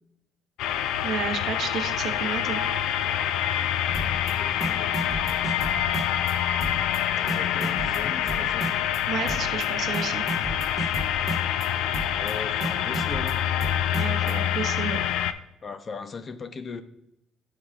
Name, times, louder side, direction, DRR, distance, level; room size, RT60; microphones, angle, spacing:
sound 1, 0.6-15.3, left 10 dB, 85° left, 0.4 m, -26 dB
voice 1, 1.0-2.6 9.1-10.2 13.9-15.0, right 7 dB, 55° right, 4 dB, 0.7 m, -31 dB
voice 2, 3.9-4.9 7.2-8.7 12.1-13.5 15.6-16.8, left 5 dB, 30° left, 10 dB, 0.5 m, -38 dB
sound 2, 3.9-4.3 4.6-6.3 6.6-7.0 7.3-9.0 9.3-9.7 9.9-11.7 11.9-12.3 12.6-14.3, right 2 dB, 30° right, 1.1 m, -33 dB
11.5 x 4.6 x 2.4 m, 0.81 s
cardioid pair, 135°, 0 cm